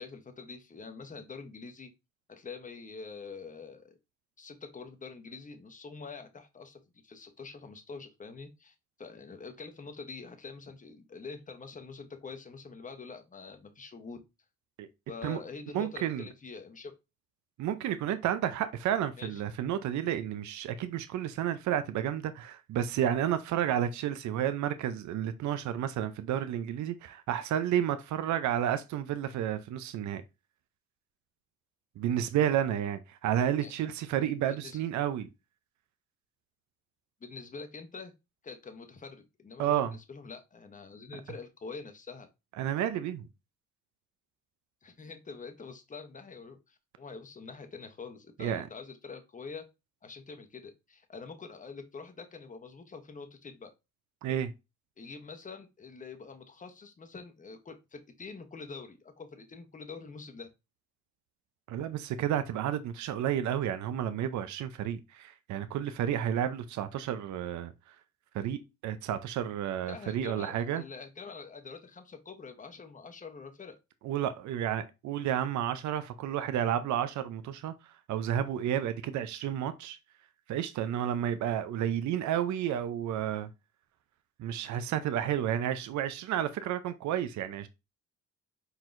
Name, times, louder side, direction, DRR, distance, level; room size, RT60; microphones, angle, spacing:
voice 1, 0.0-1.9 2.3-4.0 4.4-14.2 15.1-16.9 19.2-19.4 33.6-33.7 34.5-34.8 37.2-38.1 38.4-42.3 44.8-49.7 50.0-53.7 55.0-60.5 69.9-73.8, left 4 dB, 25° left, 0.9 m, -45 dB
voice 2, 15.7-16.3 17.6-30.2 32.0-35.3 39.6-39.9 42.6-43.3 48.4-48.7 54.2-54.5 61.7-67.7 68.3-70.8 74.0-80.0 80.5-83.5 84.4-87.7, right 10 dB, 70° right, 0.6 m, -31 dB
4.5 x 4.0 x 2.5 m
cardioid pair, 90°, 30 cm